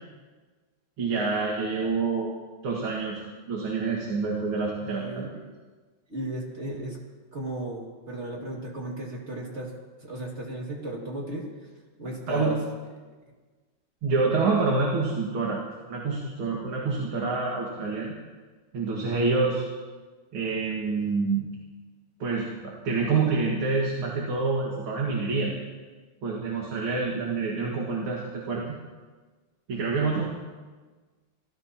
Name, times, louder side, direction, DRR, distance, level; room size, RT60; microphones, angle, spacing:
voice 1, 1.0-2.3 2.6-3.2 3.5-5.3 12.3-12.6 14.0-15.6 15.9-18.1 18.7-19.6 20.3-21.5 22.2-25.5 26.2-28.8 29.7-30.3, right 4 dB, 75° right, -2 dB, 2.7 m, -27 dB
voice 2, 4.8-5.3 6.1-7.0 7.3-9.7 10.0-11.5 12.0-12.6, right 1 dB, 30° right, -2 dB, 2.6 m, -35 dB
26.0 x 15.5 x 3.0 m, 1.4 s
omnidirectional pair, 2.3 m